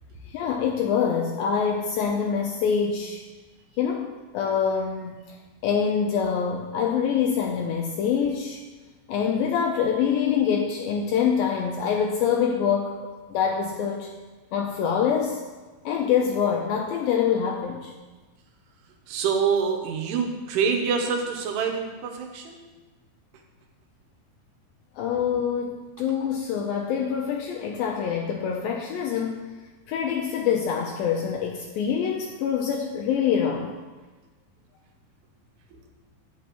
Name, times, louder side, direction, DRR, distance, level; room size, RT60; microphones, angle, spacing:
voice 1, 0.3-3.2 3.8-5.2 5.6-8.6 9.1-14.1 14.5-15.4 15.9-17.9 25.0-29.4 29.9-33.7, left 7 dB, 85° left, 1 dB, 2.1 m, -25 dB
voice 2, 19.1-22.6, right 6 dB, 80° right, 3 dB, 3.0 m, -26 dB
9.2 x 8.4 x 3.0 m, 1.2 s
omnidirectional pair, 4.7 m